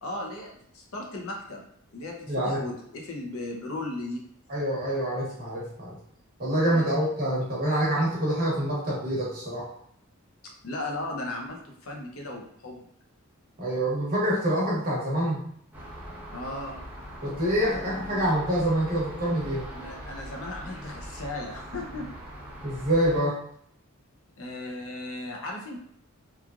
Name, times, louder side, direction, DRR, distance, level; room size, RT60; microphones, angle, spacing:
voice 1, 0.0-1.6 1.9-4.2 6.7-6.9 10.6-12.8 16.3-16.8 19.7-22.1 24.4-25.8, left 2 dB, 70° left, 0 dB, 0.6 m, -36 dB
voice 2, 2.3-2.6 4.5-6.0 6.4-9.7 13.6-15.4 17.2-19.7 22.6-23.4, right 1 dB, 45° right, -6 dB, 1.1 m, -26 dB
sound 1, 15.7-23.2, equal, 5° right, 0.7 m, -41 dB
3.1 x 2.3 x 2.4 m, 0.68 s
head